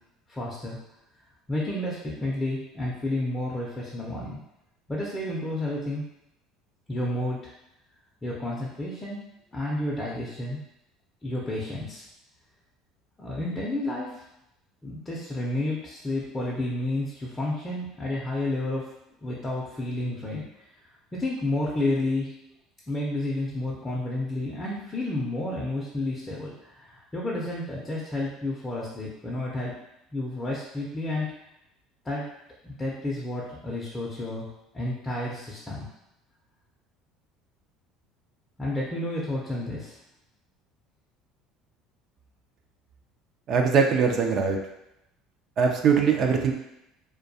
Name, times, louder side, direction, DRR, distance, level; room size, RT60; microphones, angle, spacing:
voice 1, 0.3-0.8 1.5-4.4 4.9-6.0 6.9-7.5 8.2-9.2 9.5-10.6 11.2-12.0 13.2-14.2 14.8-18.9 19.2-20.4 21.1-22.3 22.9-29.7 30.1-31.3 32.0-32.2 32.6-34.5 34.7-35.9 38.6-40.0, left 1 dB, 20° left, -5 dB, 0.5 m, -31 dB
voice 2, 43.5-44.6 45.6-46.5, right 6 dB, 50° right, 2 dB, 0.3 m, -21 dB
2.2 x 2.2 x 2.6 m, 0.85 s
supercardioid pair, 85°, 0 cm